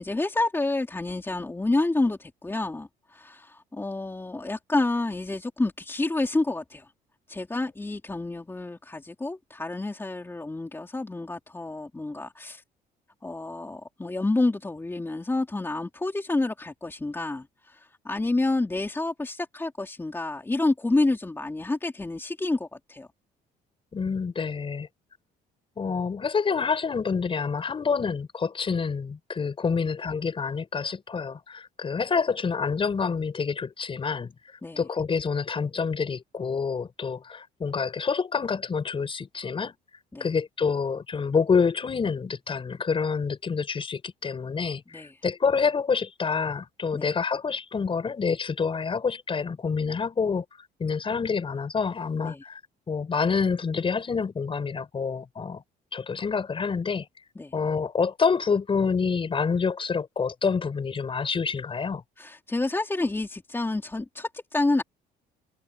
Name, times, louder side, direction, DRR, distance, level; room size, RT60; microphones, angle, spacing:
voice 1, 0.0-6.9 7.3-12.6 13.2-23.1 34.6-34.9 40.1-40.2 44.9-45.2 46.9-47.1 52.2-52.4 57.4-57.5 62.2-64.8, left 2 dB, 15° left, 3.5 m, -29 dB
voice 2, 23.9-24.9 25.8-34.3 34.8-39.8 40.2-50.4 50.8-52.6 52.9-55.6 55.9-57.1 57.5-62.0, left 5 dB, 30° left, 6.4 m, -27 dB
cardioid pair, 110°, 17 cm